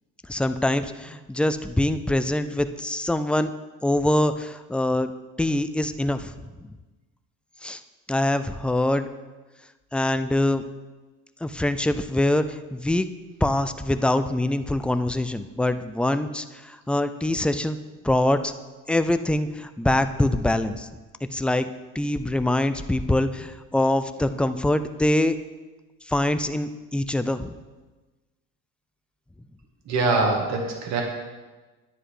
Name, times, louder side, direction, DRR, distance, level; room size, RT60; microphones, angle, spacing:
voice 1, 0.3-3.5 3.8-5.1 5.4-6.3 7.6-7.8 8.1-9.1 9.9-10.6 11.4-13.1 13.4-17.8 18.0-18.5 18.9-20.9 21.3-21.7 21.9-25.4 26.1-27.5, left 1 dB, 5° left, 10 dB, 0.4 m, -24 dB
voice 2, 29.9-31.0, right 3 dB, 55° right, 1 dB, 2.2 m, -23 dB
10.0 x 9.6 x 4.9 m, 1.2 s
cardioid pair, 135°, 32 cm